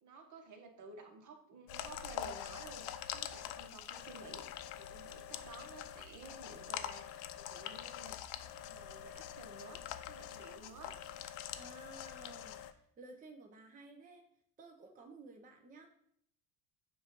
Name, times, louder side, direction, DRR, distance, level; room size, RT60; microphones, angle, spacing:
voice 1, 0.0-8.2 8.6-11.0, right 4 dB, 45° right, 4 dB, 1.3 m, -54 dB
sound 1, 1.7-12.7, left 11 dB, 70° left, 0.6 m, -45 dB
voice 2, 11.6-14.2 14.6-15.9, right 3 dB, 20° right, 3 dB, 0.7 m, -54 dB
6.9 x 2.6 x 5.3 m, 0.68 s
supercardioid pair, 115°, 42 cm